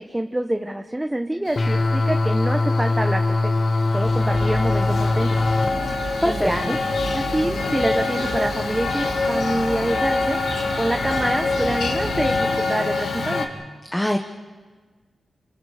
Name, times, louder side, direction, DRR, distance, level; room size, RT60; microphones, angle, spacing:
voice 1, 0.0-3.5 3.9-5.4 6.2-6.7 7.1-10.4 10.8-13.5, right 1 dB, 10° right, 5 dB, 1.0 m, -26 dB
Male speech man speaking, 1.5-13.5, left 3 dB, 85° left, 2.2 m, -26 dB
sound 1, 1.5-5.7, left 2 dB, 40° left, 1.2 m, -21 dB
sound 2, 4.0-12.4, right 3 dB, 50° right, 1.8 m, -34 dB
voice 2, 6.2-6.8 13.9-14.2, left 1 dB, 10° left, 3 dB, 1.2 m, -22 dB
29.5 x 27.5 x 5.0 m, 1.4 s
wide cardioid pair, 110°, 0 cm